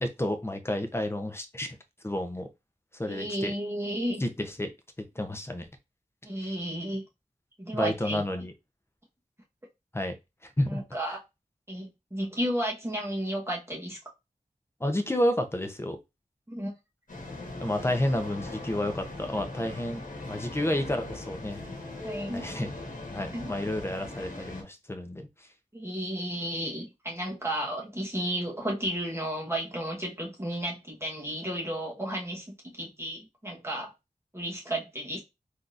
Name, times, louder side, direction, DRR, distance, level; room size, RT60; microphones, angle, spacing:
voice 1, 0.0-1.8 2.0-2.5 3.0-3.5 4.2-4.7 5.0-5.7 7.7-8.5 9.9-10.1 10.6-10.8 14.8-16.0 17.6-21.6 22.3-22.7 23.0-25.3, left 1 dB, 15° left, 0.6 m, -30 dB
voice 2, 3.1-4.2 6.2-7.0 7.6-8.2 10.7-11.2 11.7-14.0 16.5-16.7 22.0-22.5 23.3-23.5 25.7-33.9 34.3-35.2, right 1 dB, 15° right, 1.1 m, -33 dB
sound 1, 17.1-24.6, left 2 dB, 65° left, 1.2 m, -40 dB
3.7 x 2.7 x 2.4 m
wide cardioid pair, 60°, 15 cm